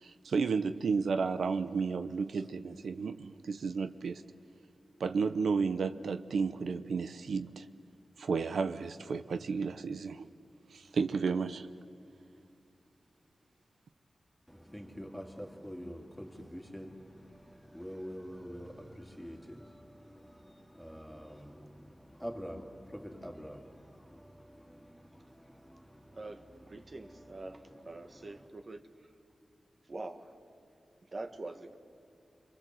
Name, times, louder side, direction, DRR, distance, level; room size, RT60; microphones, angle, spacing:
voice 1, 0.0-4.2 5.0-7.7 8.2-10.3 10.7-11.7, right 5 dB, 90° right, 0.7 m, -32 dB
voice 2, 14.5-28.5, equal, ahead, 2.8 m, -47 dB
voice 3, 26.7-28.8 29.9-30.3 31.1-31.8, right 2 dB, 45° right, 1.7 m, -44 dB
29.5 x 23.5 x 7.8 m
wide cardioid pair, 80°, 0 cm